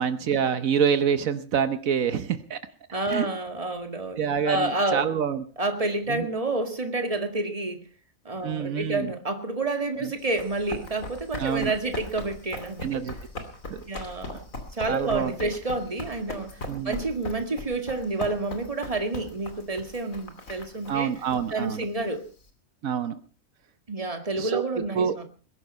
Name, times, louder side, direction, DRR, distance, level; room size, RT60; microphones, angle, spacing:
voice 1, 0.0-2.6 3.1-3.3 4.2-5.4 6.1-6.3 8.4-9.1 10.0-10.1 11.4-11.7 12.8-13.1 13.7-13.8 14.3-14.4 14.9-15.3 16.7-17.0 20.9-21.8 22.8-23.1 24.4-24.6 24.9-25.1, right 7 dB, 80° right, 12 dB, 1.4 m, -26 dB
voice 2, 2.9-5.1 5.6-7.8 8.3-13.0 13.8-14.4 14.7-16.6 16.8-21.1 21.5-22.3 23.9-25.2, right 2 dB, 25° right, 7 dB, 2.1 m, -29 dB
Run, 10.2-22.5, left 2 dB, 75° left, 3.2 m, -40 dB
21.5 x 11.0 x 5.5 m, 0.39 s
omnidirectional pair, 1.4 m